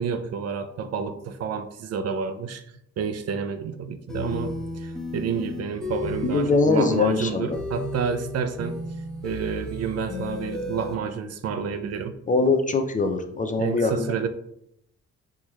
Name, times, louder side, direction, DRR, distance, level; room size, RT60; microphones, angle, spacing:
voice 1, 0.0-2.6 3.0-8.8 9.2-12.2 13.5-14.3, right 6 dB, 55° right, 0.5 m, -29 dB
sound 1, 4.1-10.9, left 1 dB, ahead, 0.7 m, -33 dB
voice 2, 6.3-7.6 12.3-14.3, left 3 dB, 25° left, 0.4 m, -22 dB
4.5 x 3.1 x 2.3 m
cardioid pair, 90°, 30 cm